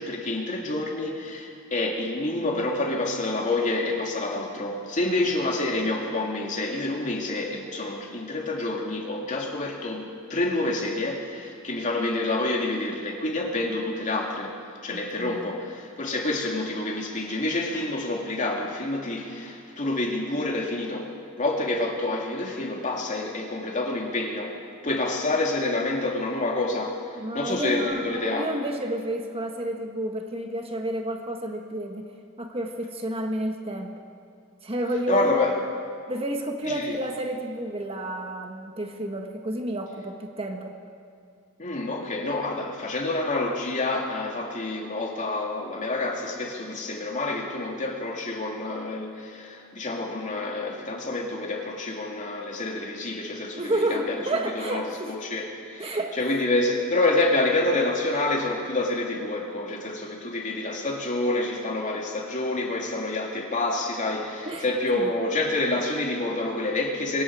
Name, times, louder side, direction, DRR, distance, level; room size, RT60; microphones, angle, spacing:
voice 1, 0.0-14.5 14.8-21.1 21.4-24.6 24.8-28.5 35.1-35.5 36.6-36.9 41.6-54.2 54.5-67.2, left 2 dB, 35° left, 0 dB, 2.8 m, -28 dB
voice 2, 14.9-15.6 27.1-32.1 32.4-33.9 34.6-35.4 36.1-40.8 53.6-55.1 55.8-56.2 64.4-64.7 64.9-65.1, right 1 dB, 30° right, 3 dB, 1.5 m, -30 dB
25.5 x 23.5 x 4.9 m, 2.4 s
head